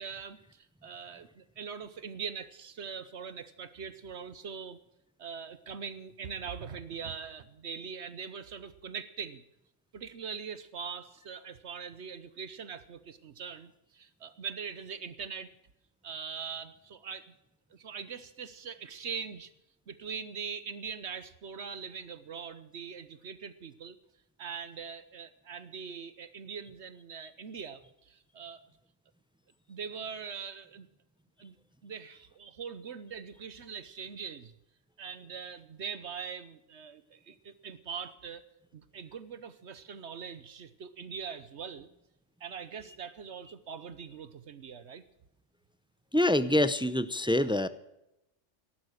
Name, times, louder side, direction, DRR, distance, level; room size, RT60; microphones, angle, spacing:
voice 1, 0.0-4.8 5.2-9.4 9.9-15.5 16.0-17.3 17.7-19.5 19.9-24.0 24.4-28.6 29.7-30.9 31.4-31.6 31.8-34.5 35.0-38.4 38.7-41.9 42.4-45.0, right 6 dB, 70° right, 13 dB, 1.2 m, -42 dB
voice 2, 46.1-47.7, left 1 dB, 5° right, 13 dB, 0.4 m, -25 dB
17.5 x 11.5 x 6.5 m, 0.86 s
omnidirectional pair, 1.2 m